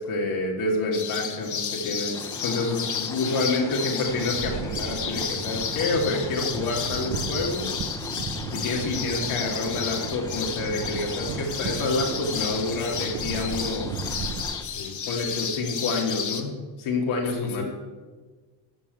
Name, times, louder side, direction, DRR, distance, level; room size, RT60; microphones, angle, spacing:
voice 1, 0.0-2.2 2.4-7.9 8.5-14.2 15.1-17.6, left 3 dB, 80° left, -1 dB, 2.5 m, -28 dB
sound 1, 0.9-16.4, left 7 dB, 40° left, 1.1 m, -32 dB
sound 2, 2.1-14.6, left 2 dB, 5° left, 0.7 m, -41 dB
sound 3, 4.1-14.4, right 5 dB, 60° right, 1.3 m, -35 dB
voice 2, 14.6-15.0 17.3-17.6, left 5 dB, 55° left, 3 dB, 2.7 m, -37 dB
14.0 x 6.0 x 8.3 m, 1.4 s
cardioid pair, 145°, 48 cm